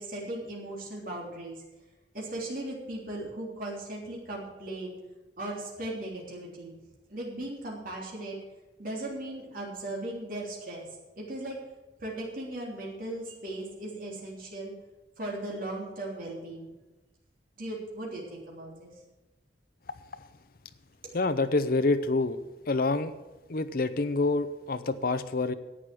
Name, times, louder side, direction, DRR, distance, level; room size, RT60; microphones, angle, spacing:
voice 1, 0.0-1.6 2.1-5.0 5.4-6.8 7.1-8.4 8.8-10.9 11.2-11.6 12.0-14.7 15.2-16.7 17.6-18.9, right 1 dB, 55° right, -3 dB, 3.4 m, -37 dB
voice 2, 21.1-22.4 22.7-23.1 23.5-25.5, left 3 dB, 55° left, 11 dB, 0.7 m, -27 dB
11.0 x 8.5 x 7.6 m, 1.1 s
head